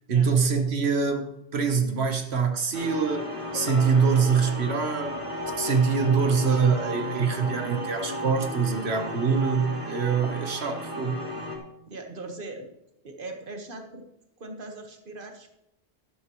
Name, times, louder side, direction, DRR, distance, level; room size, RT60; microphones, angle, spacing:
voice 1, 0.1-5.2 5.6-11.2, right 5 dB, 80° right, 5 dB, 1.5 m, -24 dB
sound 1, 2.7-11.6, equal, 30° right, 2.4 m, -34 dB
sound 2, 3.5-7.9, left 3 dB, 45° left, 1.0 m, -42 dB
voice 2, 11.9-12.7 13.0-14.0 14.4-15.5, right 2 dB, 55° right, 4 dB, 1.7 m, -39 dB
13.0 x 11.5 x 3.1 m, 0.85 s
omnidirectional pair, 1.1 m